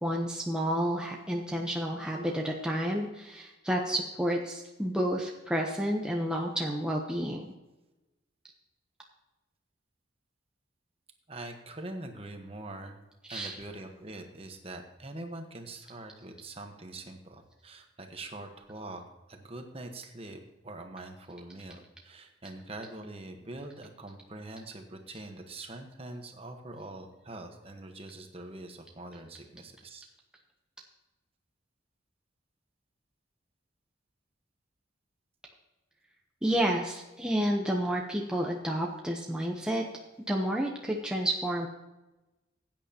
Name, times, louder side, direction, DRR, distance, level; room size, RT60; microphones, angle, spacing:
voice 1, 0.0-7.5 13.3-13.6 36.4-39.8 40.3-41.7, equal, 5° right, -1 dB, 0.8 m, -30 dB
voice 2, 11.3-13.0 13.3-19.0 19.3-20.4 20.6-30.1, right 2 dB, 30° right, 4 dB, 1.2 m, -43 dB
15.5 x 9.0 x 2.9 m, 1.0 s
head